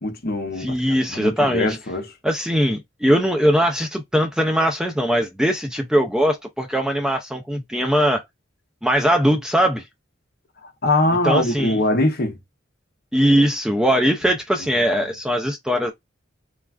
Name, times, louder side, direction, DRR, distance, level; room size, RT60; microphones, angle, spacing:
voice 1, 0.0-2.1 10.6-12.4 14.8-14.9, left 2 dB, 50° left, 0.7 m, -22 dB
voice 2, 0.6-1.7 2.2-8.2 8.8-9.9 11.2-11.8 13.1-15.9, equal, 5° right, 0.3 m, -20 dB
3.2 x 2.3 x 2.3 m
head